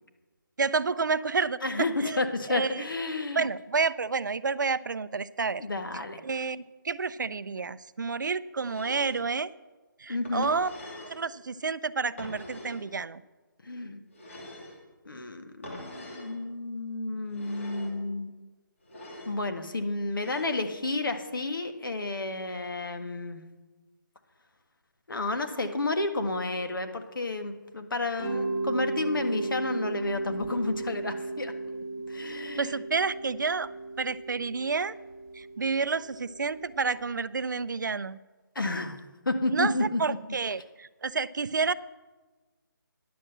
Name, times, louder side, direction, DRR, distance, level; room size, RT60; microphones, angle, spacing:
voice 1, 0.6-2.8 3.4-5.7 6.2-9.5 10.0-10.7 11.1-13.2 32.6-33.7 34.0-34.9 35.3-38.2 39.5-41.7, right 4 dB, 60° right, 15 dB, 0.4 m, -30 dB
voice 2, 1.6-3.5 5.6-6.2 10.1-10.5 13.6-14.0 15.0-18.3 19.2-23.4 25.1-31.5 32.1-32.7 38.5-39.0 39.2-40.0, left 2 dB, 75° left, 7 dB, 1.5 m, -31 dB
sound 1, 8.6-9.3 10.3-11.2 12.2-12.9 14.1-14.8 15.6-16.3 17.3-18.0 18.8-19.4 20.1-20.7, left 1 dB, 40° left, 2.8 m, -44 dB
Mallet percussion, 28.2-36.9, right 2 dB, 5° left, 3.0 m, -35 dB
10.0 x 7.4 x 7.8 m, 1.3 s
hypercardioid pair, 180°, 11 cm